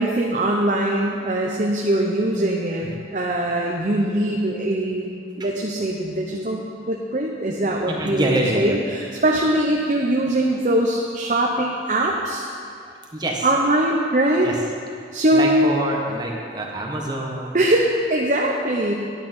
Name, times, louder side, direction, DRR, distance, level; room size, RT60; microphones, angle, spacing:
voice 1, 0.0-2.9 3.1-5.1 5.4-12.5 13.4-14.5 15.1-15.7 17.5-18.9, right 1 dB, 45° right, -1 dB, 0.9 m, -21 dB
voice 2, 7.9-8.7 12.8-13.4 14.4-14.5 15.3-17.6, right 1 dB, 25° right, -1 dB, 1.4 m, -26 dB
10.5 x 10.5 x 5.5 m, 2.3 s
head